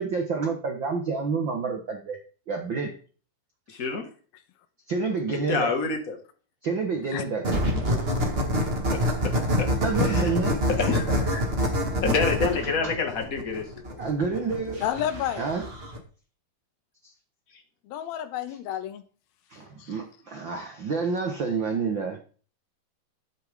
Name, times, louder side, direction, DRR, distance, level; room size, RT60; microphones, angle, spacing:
voice 1, 0.0-2.2 2.5-2.9 4.9-5.7 6.6-7.6 8.2-8.3 9.8-10.6 12.8-12.9 14.0-14.8 15.4-15.6 19.5-22.2, right 4 dB, 70° right, 1.1 m, -28 dB
voice 2, 3.7-4.1 5.5-6.2 8.6-9.3 9.6-9.7 10.1-10.2 10.7-11.4 12.0-14.0, left 4 dB, 40° left, 1.3 m, -28 dB
sound 1, 7.4-16.0, equal, 45° right, 0.8 m, -26 dB
voice 3, 14.8-15.4 17.8-19.0 19.8-19.9, left 10 dB, 85° left, 2.8 m, -30 dB
12.0 x 9.1 x 3.6 m
omnidirectional pair, 4.3 m